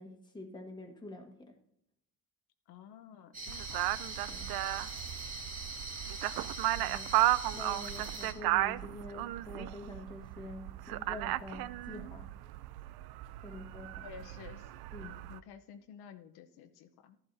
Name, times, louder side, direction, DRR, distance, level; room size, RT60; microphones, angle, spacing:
voice 1, 0.0-1.5 4.3-4.5 6.7-7.2 7.5-12.3 13.4-14.1 14.9-15.1, left 2 dB, 10° left, 2 dB, 1.5 m, -47 dB
voice 2, 2.7-3.9 13.4-13.5 14.0-14.7 15.0-17.2, left 8 dB, 80° left, 7 dB, 0.9 m, -52 dB
sound 1, 3.3-8.3, right 3 dB, 20° right, 2.2 m, -42 dB
sound 2, 3.5-15.4, right 16 dB, 75° right, 0.5 m, -35 dB
13.5 x 11.0 x 2.7 m, 0.78 s
cardioid pair, 130°, 38 cm